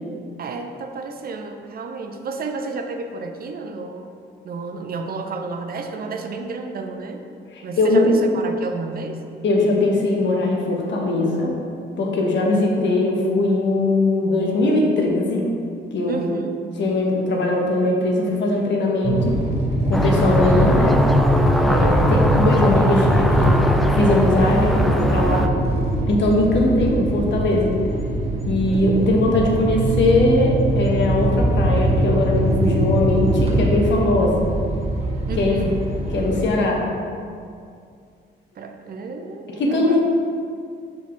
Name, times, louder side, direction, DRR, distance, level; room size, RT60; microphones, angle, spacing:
voice 1, 0.4-4.1 4.4-7.2 7.6-9.2 12.5-12.6 16.1-16.6 21.8-22.1 28.7-29.1 35.3-35.8 38.6-40.0, right 3 dB, 50° right, 5 dB, 0.6 m, -31 dB
voice 2, 7.8-8.1 9.4-11.5 12.0-15.5 15.9-16.3 16.8-19.3 19.9-21.0 21.6-25.5 26.1-27.7 28.5-34.5 35.4-35.5 36.1-36.8 39.6-40.0, left 2 dB, 65° left, -1 dB, 1.2 m, -20 dB
sound 1, 19.0-36.5, right 1 dB, 30° right, 1.1 m, -21 dB
sound 2, 19.9-25.5, right 1 dB, ahead, 0.3 m, -22 dB
5.8 x 4.0 x 4.4 m, 2.3 s
cardioid pair, 90°, 20 cm